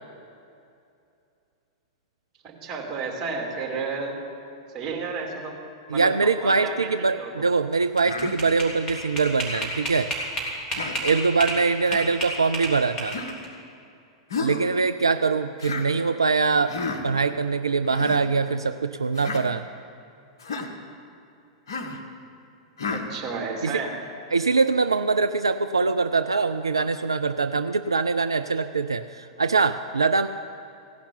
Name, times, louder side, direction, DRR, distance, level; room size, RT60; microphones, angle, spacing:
voice 1, 2.4-4.2 4.7-5.6 5.9-6.9 7.2-7.5 22.9-23.9, right 4 dB, 35° right, 0 dB, 2.7 m, -32 dB
voice 2, 5.9-10.1 11.0-13.2 14.4-16.7 17.0-19.7 23.6-23.8 24.3-30.3, right 4 dB, 85° right, 9 dB, 0.3 m, -23 dB
sound 1, 7.7-11.6 11.9-13.4, right 1 dB, 25° left, 3.5 m, -30 dB
Human voice, 8.0-8.3 9.4-9.7 10.7-11.0 11.8-12.1 13.1-13.4 14.3-14.6 15.6-15.9 16.7-17.0 17.8-18.2 19.1-19.4 20.4-20.7 21.7-22.0 22.8-23.1, left 4 dB, 65° left, 1.2 m, -32 dB
16.0 x 5.8 x 9.7 m, 2.6 s
figure-of-eight pair, 95°, 2 cm